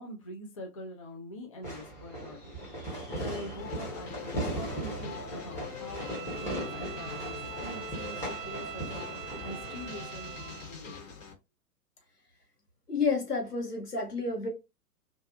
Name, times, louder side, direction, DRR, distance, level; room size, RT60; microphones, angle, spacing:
voice 1, 0.0-2.6 3.2-9.1 9.4-11.1, left 1 dB, 25° left, 0.4 m, -44 dB
Fireworks, 1.6-10.6, right 1 dB, 5° left, 0.7 m, -38 dB
sound 1, 3.6-11.3, left 6 dB, 55° left, 1.3 m, -44 dB
Bowed string instrument, 5.8-10.7, right 12 dB, 60° right, 0.6 m, -43 dB
voice 2, 12.9-14.5, left 4 dB, 85° left, 1.2 m, -30 dB
2.6 x 2.3 x 2.5 m
figure-of-eight pair, 115°, 45 cm